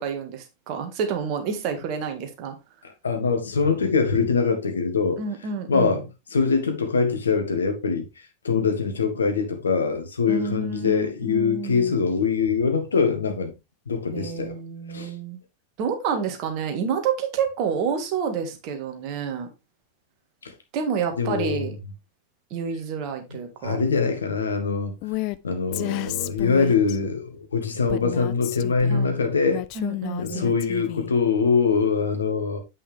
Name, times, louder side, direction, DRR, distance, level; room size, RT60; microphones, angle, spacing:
voice 1, 0.0-2.6 5.2-6.0 10.3-11.9 14.1-15.4 15.8-19.5 20.7-21.8 22.5-23.8 28.9-29.2 29.8-30.5, right 6 dB, 40° right, 1.9 m, -29 dB
voice 2, 2.8-5.2 5.7-6.0 6.3-8.1 8.4-13.5 13.9-14.5 14.9-15.1 20.4-20.5 21.2-21.7 23.6-24.9 25.4-29.6 30.2-32.6, left 5 dB, 70° left, 1.6 m, -23 dB
Female speech woman speaking, 25.0-25.4 25.7-27.0 27.9-29.0 29.5-31.1, left 19 dB, 45° left, 0.4 m, -32 dB
8.6 x 5.6 x 3.4 m
figure-of-eight pair, 90°, 0 cm